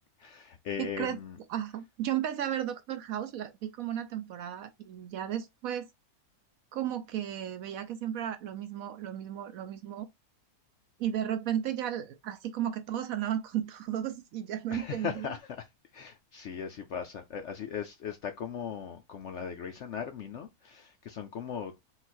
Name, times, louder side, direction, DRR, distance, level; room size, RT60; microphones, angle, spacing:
voice 1, 0.2-1.4 14.7-15.7 15.9-21.7, left 7 dB, 65° left, 0.7 m, -38 dB
voice 2, 0.8-1.2 1.5-5.9 6.7-10.1 11.0-15.3, right 10 dB, 70° right, 1.0 m, -34 dB
3.9 x 2.4 x 4.2 m
omnidirectional pair, 1.7 m